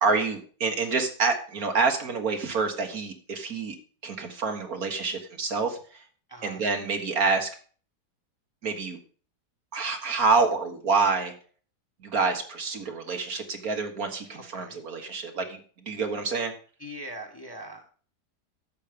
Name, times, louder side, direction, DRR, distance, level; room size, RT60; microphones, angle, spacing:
voice 1, 0.0-3.8 4.0-6.0 6.4-7.5 8.6-9.0 9.7-11.3 12.0-16.5, right 4 dB, 60° right, 5 dB, 1.8 m, -27 dB
voice 2, 6.3-6.6 14.3-14.8 16.8-17.9, right 1 dB, 15° left, 2 dB, 1.4 m, -41 dB
11.5 x 7.5 x 5.1 m, 0.42 s
omnidirectional pair, 1.7 m